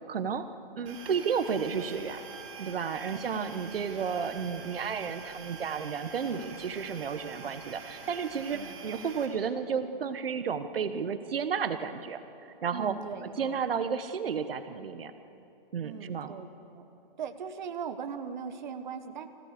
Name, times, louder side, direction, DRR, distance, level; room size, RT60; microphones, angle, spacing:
voice 1, 0.1-0.5 0.8-2.2 2.6-12.2 12.6-13.0 13.4-15.1 15.7-16.3, right 6 dB, 75° right, 10 dB, 1.2 m, -32 dB
sound 1, 0.9-9.3, right 4 dB, 35° right, 4.7 m, -46 dB
voice 2, 3.1-4.0 8.5-8.8 12.7-13.6 15.8-16.5 16.7-16.8 17.2-19.3, right 7 dB, 50° right, 8 dB, 1.2 m, -40 dB
26.0 x 16.5 x 6.7 m, 2.9 s
hypercardioid pair, 165°, 29 cm